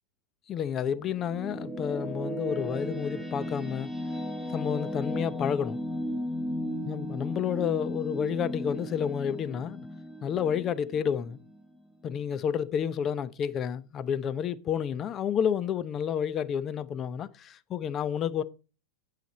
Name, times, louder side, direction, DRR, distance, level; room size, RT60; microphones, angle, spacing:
voice 1, 0.5-3.9 4.5-5.8 6.8-9.9 10.2-11.4 12.0-18.4, left 8 dB, 30° left, 0.7 m, -30 dB
sound 1, 1.0-12.1, equal, 5° left, 1.5 m, -36 dB
9.2 x 6.8 x 4.2 m
hypercardioid pair, 95°, 0 cm